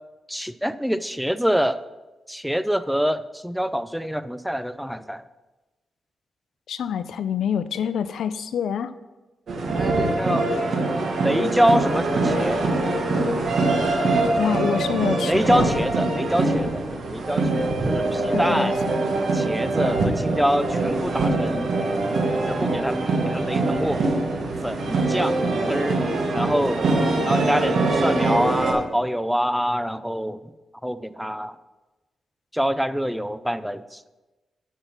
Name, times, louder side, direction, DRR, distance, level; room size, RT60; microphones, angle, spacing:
voice 1, 0.3-1.8 2.3-5.2 9.7-10.5 11.2-12.6 15.2-18.7 19.3-21.7 22.5-24.0 24.6-25.4 25.7-26.0 26.3-26.8 27.2-30.4 30.8-31.6 32.5-34.0, equal, ahead, 14 dB, 0.4 m, -25 dB
voice 2, 6.7-8.9 14.4-15.7 18.3-19.1, left 8 dB, 80° left, 13 dB, 0.4 m, -26 dB
sound 1, 9.5-28.7, right 2 dB, 65° right, 1.5 m, -23 dB
9.6 x 5.6 x 6.0 m, 1.1 s
cardioid pair, 95°, 0 cm